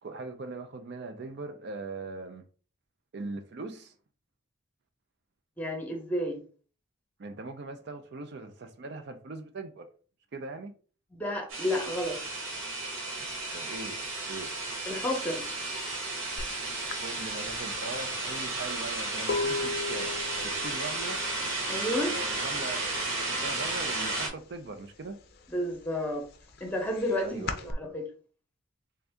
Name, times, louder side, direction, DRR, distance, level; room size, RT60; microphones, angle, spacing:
voice 1, 0.0-2.4 3.1-3.9 7.2-9.9 10.3-10.7 13.5-14.0 14.3-14.5 17.0-20.1 20.4-21.2 22.1-22.9 23.3-25.2 27.2-27.7, right 3 dB, 50° right, 0.4 m, -40 dB
voice 2, 5.6-6.4 11.1-12.2 14.8-15.4 21.7-22.1 25.5-26.3 26.6-28.1, left 1 dB, 5° left, 0.8 m, -31 dB
sound 1, 11.5-24.3, right 2 dB, 75° right, 1.3 m, -33 dB
sound 2, 16.4-16.5 16.9-22.6 22.8-23.3 23.6-24.8 25.2-27.7, left 3 dB, 45° left, 0.5 m, -36 dB
3.4 x 2.7 x 3.4 m
head